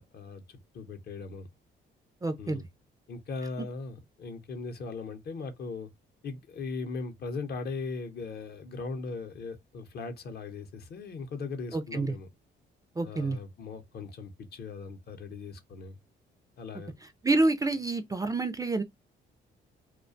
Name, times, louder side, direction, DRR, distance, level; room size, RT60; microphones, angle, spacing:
voice 1, 0.0-1.5 2.4-2.6 3.1-5.9 6.2-12.3 13.0-16.0 16.6-16.9, left 4 dB, 55° left, 0.7 m, -39 dB
voice 2, 2.2-2.6 11.7-12.1 13.0-13.4 17.2-18.8, right 2 dB, 15° right, 0.3 m, -28 dB
2.4 x 2.2 x 2.5 m
cardioid pair, 90°, 20 cm